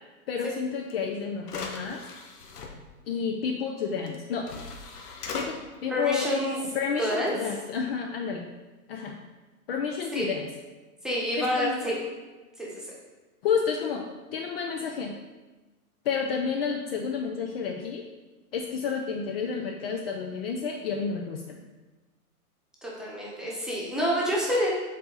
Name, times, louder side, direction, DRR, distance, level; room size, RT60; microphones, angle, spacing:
voice 1, 0.3-2.0 3.1-4.5 5.3-6.3 6.7-8.5 8.9-9.2 9.7-10.5 11.4-11.9 13.4-14.1 14.3-15.1 16.0-18.0 18.5-21.6, left 6 dB, 45° left, 3 dB, 0.5 m, -30 dB
sound 1, 0.9-1.0 1.4-2.7 4.1-4.2 4.5-5.5, left 4 dB, 85° left, 1.2 m, -38 dB
voice 2, 5.9-6.6 7.0-7.3 10.1-10.3 11.0-12.0 12.6-12.9 22.8-24.7, equal, ahead, -6 dB, 1.0 m, -28 dB
7.4 x 4.1 x 3.9 m, 1.2 s
hypercardioid pair, 145°, 45 cm